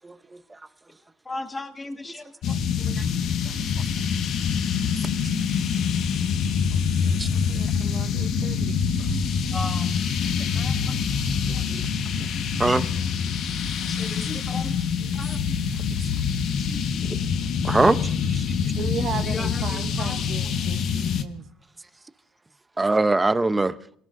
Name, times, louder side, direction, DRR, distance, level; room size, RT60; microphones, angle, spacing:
voice 1, 1.3-2.3 9.5-9.9 10.5-10.8 13.8-15.6 16.6-17.0 19.2-20.2, left 2 dB, 15° left, 1.9 m, -36 dB
sound 1, 2.4-21.2, left 6 dB, 55° left, 1.3 m, -25 dB
voice 2, 6.7-8.8 18.8-21.5, right 8 dB, 50° right, 0.9 m, -36 dB
voice 3, 11.5-11.8 12.6-12.8 17.6-18.4 22.8-23.7, right 2 dB, 15° right, 0.7 m, -22 dB
27.0 x 18.0 x 2.6 m
cardioid pair, 110°, 0 cm